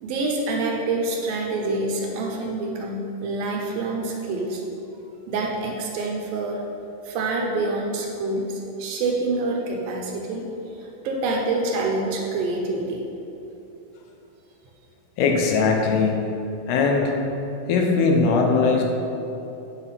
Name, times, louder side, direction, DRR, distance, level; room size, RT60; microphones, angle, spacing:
voice 1, 0.0-4.6 5.3-6.6 7.0-10.5 10.8-13.0, right 2 dB, 70° right, 0 dB, 2.6 m, -26 dB
voice 2, 15.2-16.3 16.7-17.2 17.7-18.8, left 4 dB, 80° left, 1 dB, 3.0 m, -20 dB
10.5 x 6.1 x 5.7 m, 2.9 s
omnidirectional pair, 4.6 m